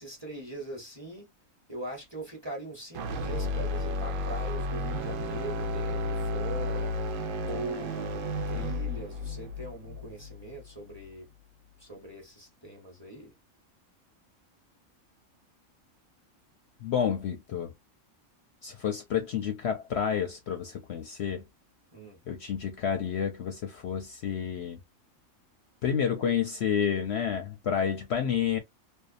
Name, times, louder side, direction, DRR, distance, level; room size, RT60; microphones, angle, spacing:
voice 1, 0.0-1.3 1.7-6.9 7.4-11.3 11.8-13.3 21.9-22.2, right 1 dB, 20° right, 1.0 m, -41 dB
sound 1, 2.9-11.1, left 1 dB, 75° right, 1.0 m, -32 dB
voice 2, 16.8-17.7 18.6-21.4 22.3-24.8 25.8-28.6, left 8 dB, 60° left, 0.8 m, -30 dB
2.6 x 2.3 x 2.4 m
omnidirectional pair, 1.4 m